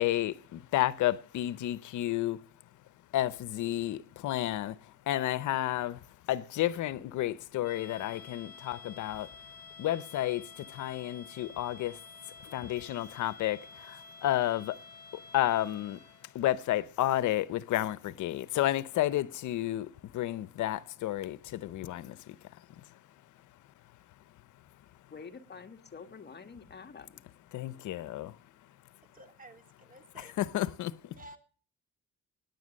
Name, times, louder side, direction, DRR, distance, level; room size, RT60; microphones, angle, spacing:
voice 1, 0.0-2.4 3.1-6.0 6.3-9.3 9.8-14.8 15.1-16.0 16.3-22.8 27.5-28.4 30.4-31.2, left 14 dB, 80° left, 0.7 m, -31 dB
sound 1, 7.6-16.3, left 4 dB, 60° left, 7.2 m, -51 dB
voice 2, 25.1-27.2, left 5 dB, 35° left, 1.7 m, -47 dB
voice 3, 29.1-30.3 31.1-31.4, right 2 dB, 30° right, 2.9 m, -52 dB
17.0 x 10.5 x 6.4 m
cardioid pair, 90°, 30 cm